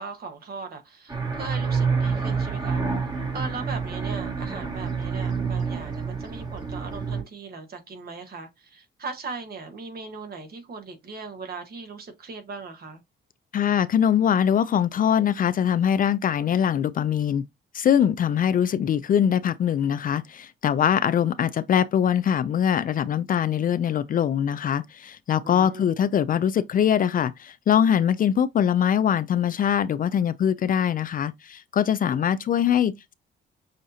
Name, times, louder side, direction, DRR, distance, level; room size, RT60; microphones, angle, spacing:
voice 1, 0.0-13.0 25.4-25.9, right 4 dB, 50° right, 1.4 m, -39 dB
sound 1, 1.1-7.2, right 5 dB, 20° right, 1.4 m, -28 dB
voice 2, 13.5-17.4 17.7-33.1, left 9 dB, 45° left, 0.4 m, -22 dB
6.4 x 2.5 x 2.7 m
cardioid pair, 90°, 20 cm